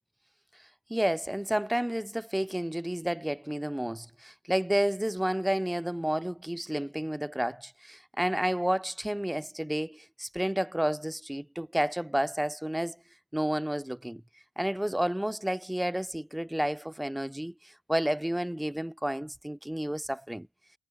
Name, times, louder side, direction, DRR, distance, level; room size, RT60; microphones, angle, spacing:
voice 1, 0.9-13.0 13.3-14.2 14.6-20.5, right 1 dB, 5° right, 6.8 m, -30 dB
cardioid pair, 90°, 0 cm